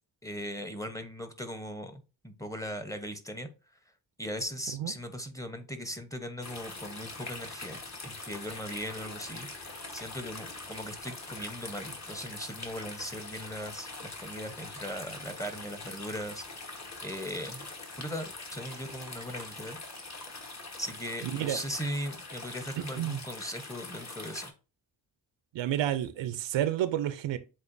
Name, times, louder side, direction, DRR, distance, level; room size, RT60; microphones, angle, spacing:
voice 1, 0.2-3.5 4.2-17.7 18.0-19.8 20.8-24.5, equal, 5° left, 0.7 m, -39 dB
sound 1, 6.4-24.5, left 3 dB, 40° left, 1.2 m, -43 dB
voice 2, 21.2-21.6 22.8-23.2 25.5-27.4, right 11 dB, 85° right, 0.6 m, -30 dB
7.3 x 2.4 x 2.6 m
cardioid pair, 60°, 44 cm